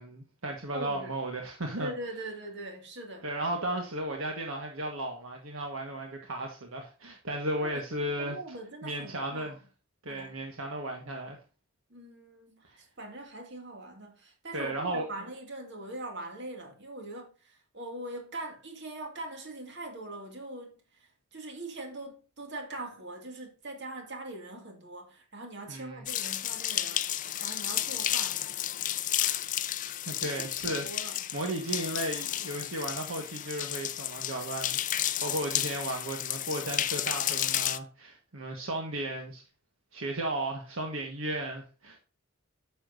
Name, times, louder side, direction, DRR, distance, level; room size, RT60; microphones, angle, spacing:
voice 1, 0.0-1.9 3.2-8.4 8.8-9.6 10.0-11.4 14.5-15.0 25.7-26.0 30.1-39.4 39.9-42.0, right 1 dB, 70° right, 1.5 m, -35 dB
voice 2, 0.7-1.2 1.8-3.3 7.6-9.6 10.1-10.4 11.9-28.5 29.2-29.4 30.2-31.2, right 2 dB, 55° right, 2.3 m, -42 dB
sound 1, 26.1-37.8, left 12 dB, 35° left, 0.5 m, -32 dB
9.9 x 7.0 x 2.7 m
head